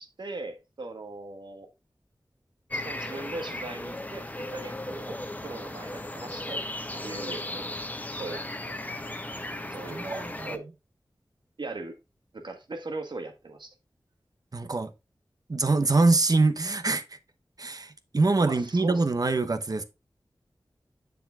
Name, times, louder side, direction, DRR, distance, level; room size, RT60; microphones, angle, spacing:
voice 1, 0.0-1.7 2.7-6.6 6.9-7.7 8.1-8.7 9.7-10.1 10.4-10.7 11.6-12.0 12.3-13.7 18.4-19.0, right 2 dB, 75° right, 1.5 m, -39 dB
sound 1, 2.7-10.6, left 1 dB, 20° left, 0.9 m, -36 dB
voice 2, 9.9-10.5 14.5-14.9 15.5-17.2 17.6-19.8, right 3 dB, 50° right, 1.0 m, -24 dB
8.3 x 6.8 x 2.4 m
wide cardioid pair, 55°, 8 cm